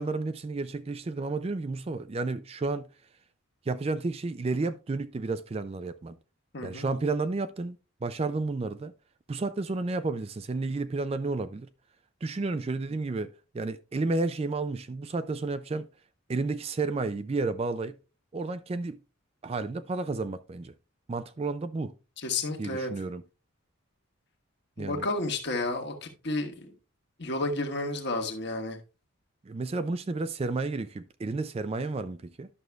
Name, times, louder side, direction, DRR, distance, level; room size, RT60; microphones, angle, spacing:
voice 1, 0.0-2.9 3.7-6.2 6.6-8.9 9.3-11.7 12.2-15.9 16.3-18.0 18.3-19.0 19.4-20.7 21.1-21.9 22.6-23.2 24.8-25.1 29.5-32.5, right 3 dB, 30° right, 0.3 m, -31 dB
voice 2, 6.5-6.9 22.2-22.9 24.8-26.7 27.2-28.8, left 2 dB, 50° left, 1.3 m, -31 dB
11.0 x 6.3 x 2.3 m
head